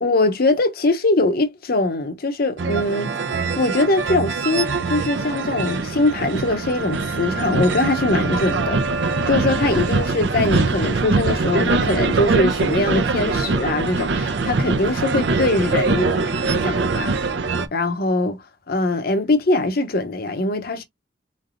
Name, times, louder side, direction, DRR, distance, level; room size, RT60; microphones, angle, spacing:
voice 1, 0.0-3.2 3.6-8.8 9.3-17.1 17.7-18.4 18.7-20.8, left 2 dB, 55° left, 0.8 m, -22 dB
sound 1, 2.6-17.7, right 3 dB, 75° right, 0.6 m, -23 dB
3.8 x 3.3 x 2.5 m
head